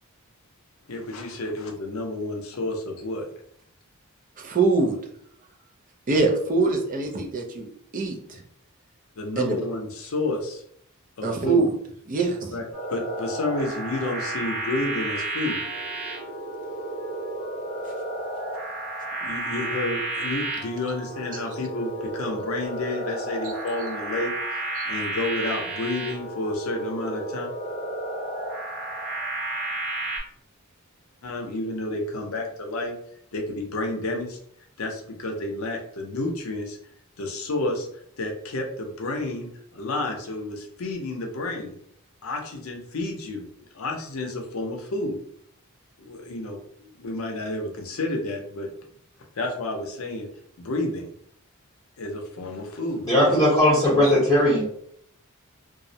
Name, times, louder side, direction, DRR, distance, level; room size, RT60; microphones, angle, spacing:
voice 1, 0.9-3.3 9.2-10.6 11.2-11.7 12.5-15.6 19.2-24.3 24.9-27.5 31.2-33.0 33.3-34.4 34.8-36.8 37.2-37.9 38.2-41.7 42.2-43.5 43.7-45.2 46.0-48.7 49.4-50.3 50.6-51.1 52.0-53.4, left 2 dB, 80° left, 1 dB, 0.6 m, -30 dB
voice 2, 4.4-5.0 6.1-7.7 7.9-8.4 9.4-9.6 11.2-11.7 12.1-12.5 24.8-24.9, right 3 dB, 40° right, 2 dB, 0.5 m, -23 dB
sound 1, 12.7-30.2, right 2 dB, 75° right, 1.0 m, -32 dB
voice 3, 53.0-54.6, left 1 dB, 15° left, -11 dB, 0.8 m, -18 dB
2.3 x 2.0 x 2.7 m, 0.66 s
head